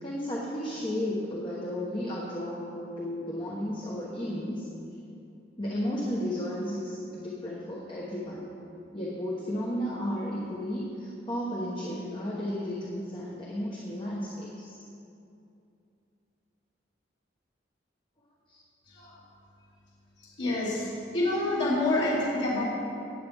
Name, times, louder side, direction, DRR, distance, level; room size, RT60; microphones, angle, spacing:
voice 1, 0.0-4.7 5.6-8.4 8.9-14.8 18.5-18.6, equal, 25° left, -4 dB, 1.2 m, -33 dB
voice 2, 20.4-20.9 21.1-22.6, left 2 dB, 70° left, -8 dB, 2.8 m, -26 dB
17.5 x 8.6 x 3.6 m, 2.6 s
head